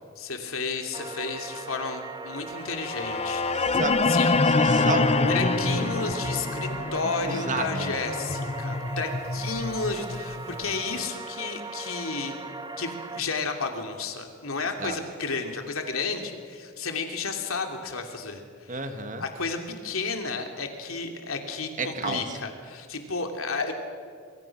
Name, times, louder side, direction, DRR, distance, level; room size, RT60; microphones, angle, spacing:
voice 1, 0.2-4.4 5.3-12.4 12.8-18.8 19.2-23.7, left 4 dB, 80° left, 4 dB, 2.8 m, -32 dB
sound 1, 0.9-13.2, right 4 dB, 20° right, 0.9 m, -38 dB
sound 2, 2.7-10.8, left 3 dB, 30° left, 0.7 m, -26 dB
voice 2, 3.6-4.0 4.3-5.9 7.3-7.7 14.8-15.0 18.7-19.2 21.8-22.2, right 3 dB, 40° right, 7 dB, 1.9 m, -31 dB
25.5 x 24.5 x 6.0 m, 2.1 s
head